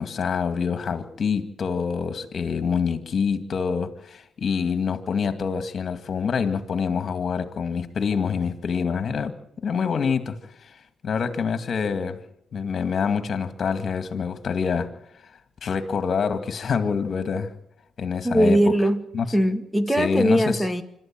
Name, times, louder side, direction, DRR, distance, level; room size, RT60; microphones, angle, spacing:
voice 1, 0.0-9.3 9.6-10.8 11.0-12.2 12.5-14.9 15.6-17.5 18.0-18.6 19.1-19.3 20.0-20.6, left 6 dB, 50° left, 2.1 m, -26 dB
voice 2, 18.2-19.0 19.3-20.8, equal, ahead, 1.9 m, -20 dB
26.0 x 13.0 x 7.7 m
cardioid pair, 90°, 0 cm